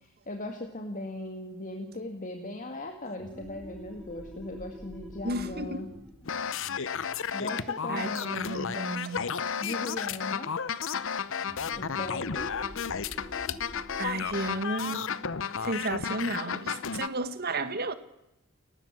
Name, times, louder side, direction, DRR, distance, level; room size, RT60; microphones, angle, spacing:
voice 1, 0.0-5.9 7.3-8.8 9.6-10.5 11.7-12.5, left 1 dB, 35° left, 2.2 m, -38 dB
sound 1, 3.0-8.3 11.4-16.7, equal, ahead, 4.6 m, -48 dB
voice 2, 5.2-5.9 7.9-9.2 14.0-15.1 15.6-17.9, right 2 dB, 45° right, 1.9 m, -33 dB
sound 2, 6.3-17.1, left 7 dB, 60° left, 0.8 m, -33 dB
30.0 x 15.0 x 7.6 m
head